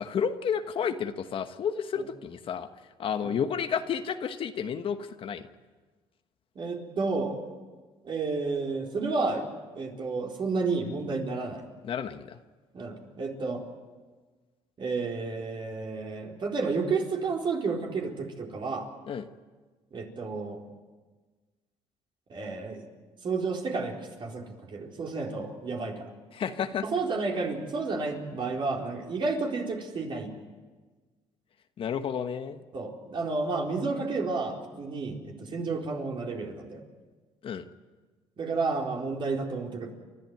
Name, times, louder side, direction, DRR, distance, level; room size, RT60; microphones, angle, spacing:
voice 1, 0.0-2.7 3.0-5.4 11.8-12.4 19.1-19.2 26.3-26.8 31.8-32.6 37.4-37.6, left 7 dB, 50° left, 8 dB, 1.3 m, -31 dB
voice 2, 6.6-7.4 8.0-9.5 9.7-11.6 12.7-13.6 14.8-18.9 19.9-20.6 22.3-22.9 23.2-26.1 26.8-30.3 32.7-36.8 38.4-39.9, right 4 dB, 45° right, 0 dB, 4.3 m, -31 dB
30.0 x 12.5 x 9.3 m, 1.4 s
cardioid pair, 90°, 11 cm